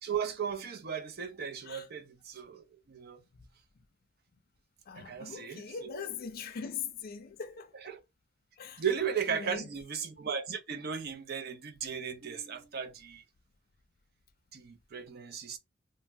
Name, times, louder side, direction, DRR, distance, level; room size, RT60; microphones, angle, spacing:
voice 1, 0.0-3.2 4.9-6.1 7.8-8.0 8.8-13.2 14.5-15.6, right 7 dB, 50° right, 0.5 m, -36 dB
voice 2, 4.9-7.7 8.6-8.8 9.1-9.7, left 6 dB, 50° left, 0.4 m, -41 dB
2.6 x 2.0 x 3.2 m
head